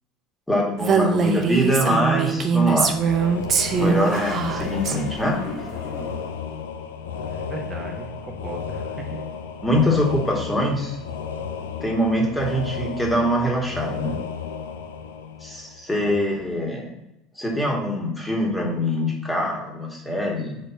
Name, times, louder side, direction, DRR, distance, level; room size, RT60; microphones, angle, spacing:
voice 1, 0.5-2.9 3.8-5.4 9.6-11.0 11.6-14.2 15.4-16.9 17.4-20.6, equal, 10° left, -1 dB, 2.0 m, -23 dB
Female speech woman speaking, 0.8-5.0, right 6 dB, 40° right, 0.7 m, -22 dB
sound 1, 2.7-16.1, left 6 dB, 75° left, 0.5 m, -33 dB
Toilet flush, 3.4-6.5, left 1 dB, 55° left, 2.1 m, -35 dB
voice 2, 7.2-9.2 16.0-16.2, right 2 dB, 15° right, -1 dB, 1.2 m, -36 dB
5.1 x 4.4 x 5.5 m, 0.87 s
figure-of-eight pair, 70°, 0 cm